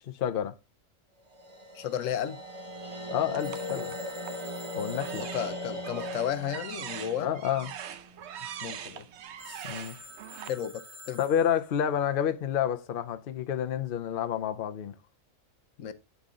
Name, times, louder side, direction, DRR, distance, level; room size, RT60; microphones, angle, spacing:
voice 1, 0.2-0.5 3.1-4.0 4.7-5.3 7.2-7.7 9.6-10.0 11.2-14.9, left 9 dB, 55° left, 0.6 m, -29 dB
sound 1, 1.3-8.5, left 1 dB, 25° right, 0.9 m, -39 dB
voice 2, 1.7-2.4 5.3-7.3 8.6-9.1 9.5-9.7 10.4-11.2 15.8-15.9, left 9 dB, 75° left, 1.0 m, -33 dB
sound 2, 3.3-4.5 4.9-10.5, right 9 dB, 65° right, 0.8 m, -42 dB
Telephone, 3.4-7.0 9.4-11.9, left 1 dB, 40° right, 1.3 m, -50 dB
8.4 x 3.8 x 3.6 m
omnidirectional pair, 1.4 m